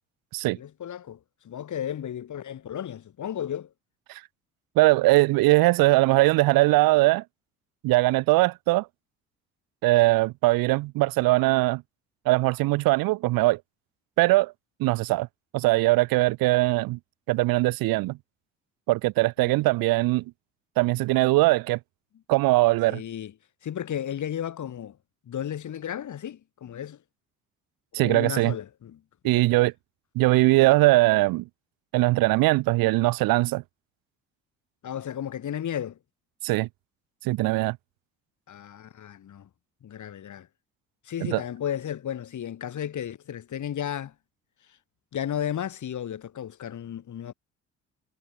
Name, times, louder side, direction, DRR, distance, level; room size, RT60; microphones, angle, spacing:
voice 1, 0.5-1.2 1.4-3.7 19.4-19.6 22.9-23.3 23.6-25.0 25.3-27.0 28.0-29.0 29.2-29.5 34.8-36.0 38.5-39.5 39.8-40.5 41.1-44.1 45.1-47.3, left 10 dB, 55° left, 6.6 m, -34 dB
voice 2, 4.8-7.2 7.8-8.9 9.8-11.8 12.3-13.6 14.2-14.5 14.8-15.3 15.5-17.0 17.3-18.2 18.9-20.2 20.8-21.8 22.3-23.0 27.9-28.5 29.2-29.7 30.1-31.4 31.9-33.6 36.4-36.7 37.2-37.8 41.2-41.4, right 20 dB, 75° right, 2.7 m, -21 dB
hypercardioid pair, 55°, 35 cm